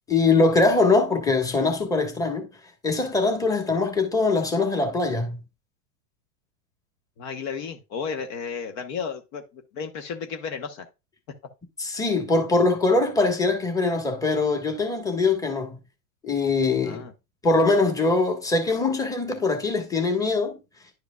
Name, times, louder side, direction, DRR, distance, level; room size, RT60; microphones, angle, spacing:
voice 1, 0.1-2.5 2.8-5.4 11.8-15.8 16.2-17.0 17.4-20.6, left 3 dB, 10° left, 1.3 m, -22 dB
voice 2, 7.2-10.8 16.8-17.1, left 6 dB, 50° left, 1.1 m, -33 dB
10.5 x 4.9 x 2.3 m
hypercardioid pair, 120°, 41 cm